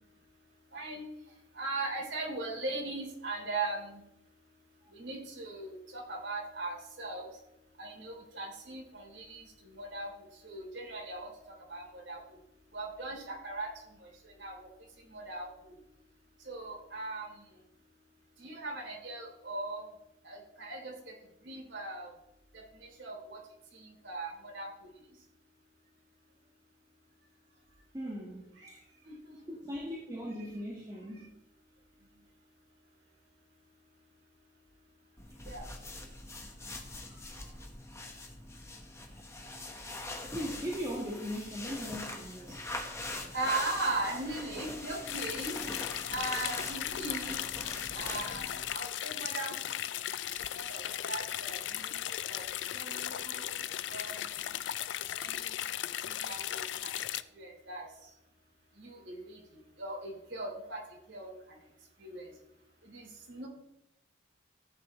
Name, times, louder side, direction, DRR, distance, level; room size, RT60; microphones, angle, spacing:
voice 1, 0.7-1.1 1.5-4.0 4.9-7.3 7.8-10.1 10.4-11.3 11.7-12.2 12.7-13.7 14.0-14.1 14.4-14.7 15.1-15.5 16.5-17.4 18.4-19.8 20.2-20.9 21.4-22.1 23.0-23.4 23.7-24.7 28.6-28.7 29.1-29.2 35.5-35.7 43.3-45.5 46.1-47.4 47.9-49.5 50.5-52.4 52.7-53.6 53.9-54.4 55.2-55.6 56.3-56.9 57.4-57.8 58.8-59.4 59.8-60.8 61.1-61.3 62.0-62.3 62.8-63.5, right 2 dB, 65° right, -1 dB, 3.1 m, -39 dB
voice 2, 27.9-28.8 29.5-31.3 37.0-37.5 40.3-42.7, equal, 20° right, -3 dB, 1.5 m, -39 dB
sound 1, 35.2-48.7, left 2 dB, 15° left, 1.2 m, -43 dB
sound 2, 45.1-57.2, left 11 dB, 65° left, 0.4 m, -37 dB
14.5 x 9.5 x 3.1 m, 0.87 s
head